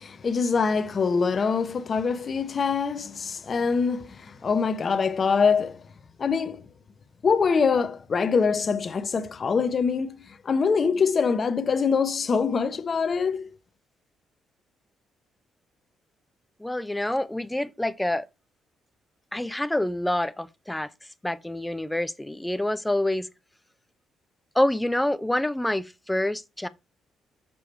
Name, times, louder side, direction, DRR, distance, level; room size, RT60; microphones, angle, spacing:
voice 1, 0.0-5.8 6.2-6.7 7.2-13.5, left 5 dB, 40° left, 0.9 m, -24 dB
voice 2, 16.6-18.3 19.3-20.9 21.2-23.3 24.5-26.7, left 1 dB, 10° left, 0.7 m, -27 dB
7.0 x 4.8 x 4.5 m
cardioid pair, 90°, 0 cm